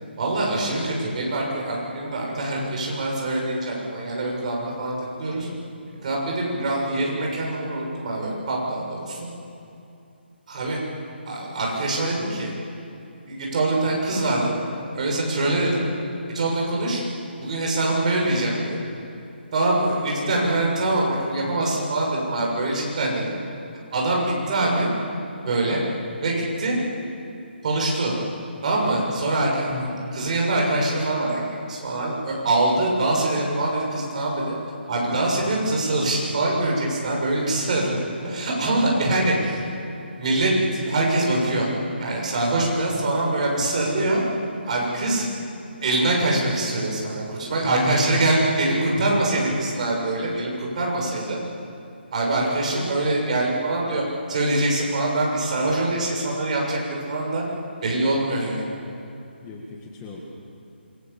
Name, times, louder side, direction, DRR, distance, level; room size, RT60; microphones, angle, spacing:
voice 1, 0.2-5.5 6.0-9.3 10.5-10.8 11.3-12.5 13.3-14.6 14.9-15.8 16.3-17.0 17.4-18.8 19.5-23.4 23.9-24.9 25.4-25.8 26.2-26.8 27.6-28.1 28.6-29.9 30.1-31.4 31.7-34.5 34.9-39.7 40.2-41.7 42.0-44.2 44.6-45.3 45.8-51.4 52.1-54.0 54.3-57.4 57.8-58.7, right 2 dB, 40° right, -2 dB, 6.8 m, -24 dB
voice 2, 29.7-30.1 47.6-48.6 50.0-50.1 59.4-60.2, left 3 dB, 15° left, -1 dB, 2.0 m, -34 dB
27.5 x 23.0 x 7.2 m, 2.7 s
hypercardioid pair, 165°, 6 cm